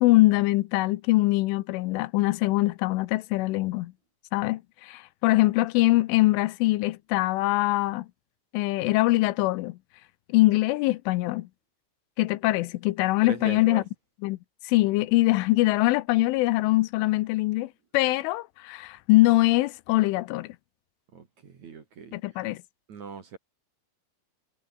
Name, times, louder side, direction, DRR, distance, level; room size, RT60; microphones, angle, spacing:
voice 1, 0.0-3.9 4.3-8.1 8.5-9.8 10.3-11.5 12.2-13.8 14.2-14.4 14.6-20.6 22.1-22.6, left 19 dB, 85° left, 3.3 m, -23 dB
voice 2, 13.2-13.8 21.1-22.1 22.9-23.4, right 5 dB, 45° right, 3.3 m, -40 dB
omnidirectional pair, 5.6 m